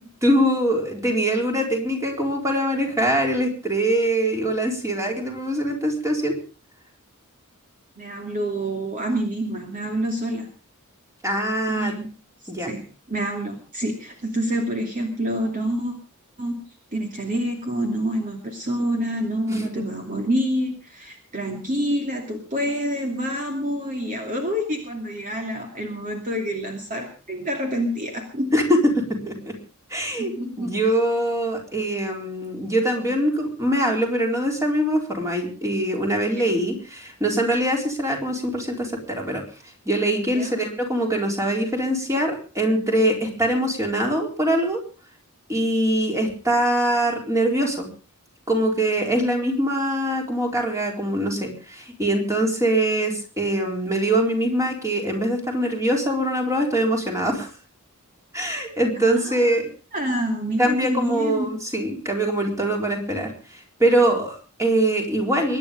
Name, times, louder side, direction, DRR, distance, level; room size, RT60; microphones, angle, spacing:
voice 1, 0.2-6.4 11.2-11.9 12.5-12.7 19.5-19.8 28.5-28.8 29.3-29.4 29.9-30.3 30.6-39.4 39.9-44.8 45.5-47.9 48.5-57.5 58.3-59.7 60.6-65.6, right 1 dB, 15° right, 2 dB, 4.2 m, -23 dB
voice 2, 8.0-10.5 11.7-12.1 12.4-12.8 13.1-15.9 16.4-16.6 16.9-28.5 30.2-30.7 36.4-36.5 40.3-40.5 59.0-59.6 59.9-61.5, equal, 35° right, 3 dB, 2.7 m, -27 dB
23.0 x 10.5 x 5.2 m, 0.37 s
head